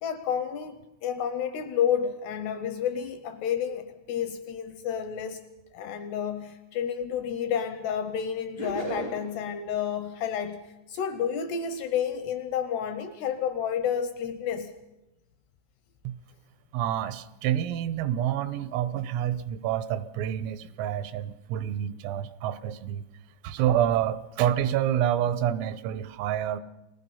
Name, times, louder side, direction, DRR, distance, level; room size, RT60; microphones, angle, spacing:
voice 1, 0.0-5.4 5.7-14.7, left 8 dB, 80° left, 9 dB, 2.4 m, -30 dB
sound 1, 8.6-9.5, right 1 dB, 30° right, 0.4 m, -34 dB
voice 2, 16.7-23.1 23.4-26.6, right 11 dB, 85° right, 14 dB, 3.5 m, -28 dB
29.5 x 20.0 x 5.6 m, 0.97 s
omnidirectional pair, 5.8 m